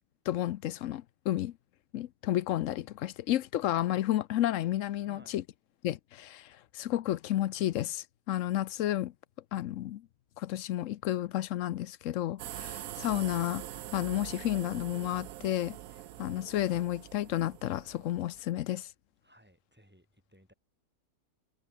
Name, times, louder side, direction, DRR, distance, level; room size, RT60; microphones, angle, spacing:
voice 1, 0.3-1.5 1.9-5.4 5.8-9.1 9.5-10.0 10.4-13.6 13.9-15.8 16.2-18.9, left 13 dB, 70° left, 0.9 m, -31 dB
voice 2, 5.0-5.4 19.2-20.5, equal, 5° right, 7.8 m, -60 dB
sound 1, 12.4-18.4, right 13 dB, 75° right, 1.1 m, -44 dB
omnidirectional pair, 1.5 m